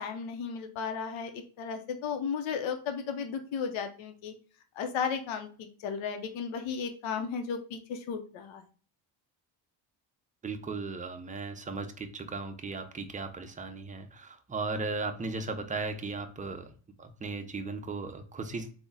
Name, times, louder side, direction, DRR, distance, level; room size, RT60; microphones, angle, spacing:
voice 1, 0.0-4.3 4.8-8.6, left 6 dB, 75° left, 6 dB, 0.7 m, -34 dB
voice 2, 10.4-16.7 17.0-18.8, right 3 dB, 15° right, 6 dB, 0.5 m, -36 dB
3.5 x 2.1 x 3.9 m, 0.40 s
cardioid pair, 80°, 48 cm